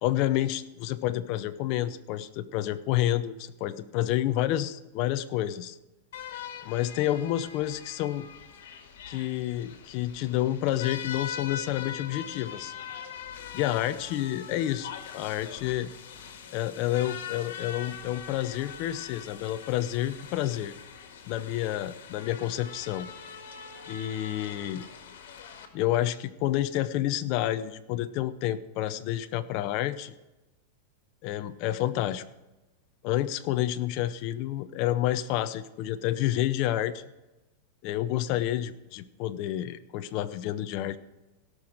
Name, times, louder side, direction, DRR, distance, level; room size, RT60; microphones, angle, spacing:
voice 1, 0.0-5.8 6.6-8.3 9.1-12.7 13.5-15.9 16.5-20.7 21.3-23.1 23.9-24.8 25.7-30.1 31.2-32.2 33.0-37.0 37.8-41.0, left 13 dB, 45° left, 11 dB, 0.7 m, -29 dB
sound 1, 6.1-25.7, left 8 dB, 75° left, 1.9 m, -42 dB
17.0 x 6.2 x 5.0 m, 1.0 s
supercardioid pair, 150°, 0 cm